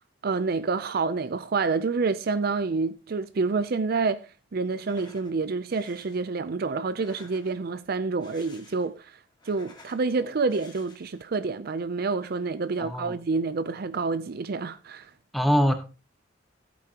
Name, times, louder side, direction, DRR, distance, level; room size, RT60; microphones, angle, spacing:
voice 1, 0.2-9.2 9.4-15.1, right 4 dB, 50° right, 0.5 m, -28 dB
sound 1, 4.7-5.3 5.7-6.2 6.8-7.7 8.1-9.0 9.3-10.1 10.5-11.2, left 3 dB, 25° left, 1.9 m, -53 dB
voice 2, 12.8-13.2 15.3-15.7, equal, ahead, 1.1 m, -23 dB
14.5 x 8.5 x 2.9 m
head